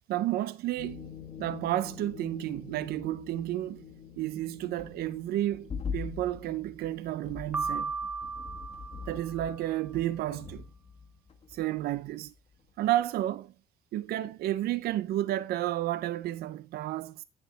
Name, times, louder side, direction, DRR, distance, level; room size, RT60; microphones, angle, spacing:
voice 1, 0.1-1.1 1.4-3.9 4.2-7.9 9.1-10.7 11.5-12.3 12.8-13.5 13.9-17.2, right 14 dB, 65° right, 0.5 m, -31 dB
sound 1, 0.8-12.3 12.6-12.8, left 6 dB, 40° left, 1.5 m, -43 dB
Piano, 7.5-9.7, right 4 dB, 10° right, 0.5 m, -35 dB
8.4 x 7.1 x 4.0 m
cardioid pair, 110°, 17 cm